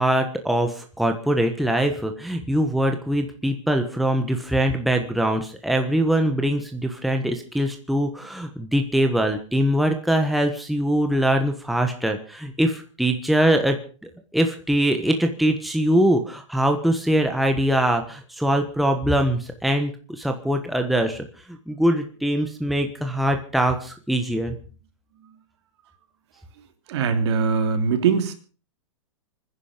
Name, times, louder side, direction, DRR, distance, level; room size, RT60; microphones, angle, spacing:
voice 1, 0.0-13.8 14.3-24.5, right 1 dB, ahead, 4 dB, 1.3 m, -22 dB
voice 2, 26.9-28.3, right 5 dB, 60° right, 7 dB, 3.2 m, -21 dB
25.5 x 10.5 x 5.1 m, 0.38 s
hypercardioid pair, 145°, 16 cm